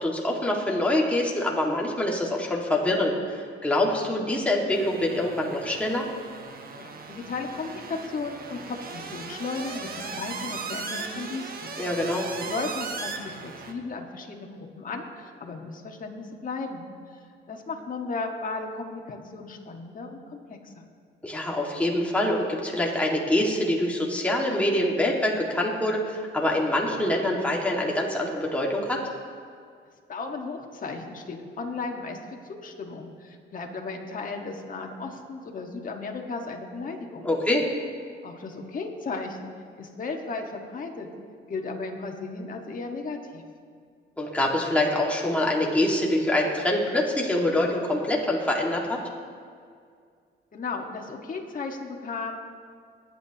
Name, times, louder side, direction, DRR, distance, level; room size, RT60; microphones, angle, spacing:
voice 1, 0.0-6.1 11.8-12.3 21.2-29.0 37.2-37.7 44.2-49.0, left 1 dB, 5° left, -2 dB, 1.9 m, -25 dB
sound 1, 4.7-13.7, right 4 dB, 50° right, 1.1 m, -38 dB
voice 2, 6.7-11.7 12.5-17.2 17.5-20.8 30.1-37.3 38.2-39.5 39.8-41.1 41.5-43.4 50.5-52.4, left 3 dB, 45° left, 1 dB, 1.6 m, -35 dB
20.0 x 9.0 x 2.9 m, 2.1 s
cardioid pair, 90°, 20 cm